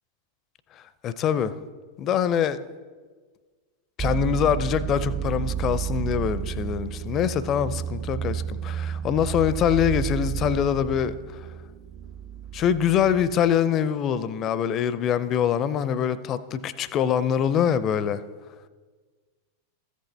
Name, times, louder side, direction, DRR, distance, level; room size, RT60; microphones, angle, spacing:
voice 1, 1.0-1.5 2.0-2.6 4.0-11.1 12.5-18.2, left 9 dB, 30° left, 0.5 m, -24 dB
sound 1, 4.0-13.6, right 9 dB, 25° right, 0.4 m, -31 dB
14.5 x 8.1 x 3.3 m
figure-of-eight pair, 90°, 0 cm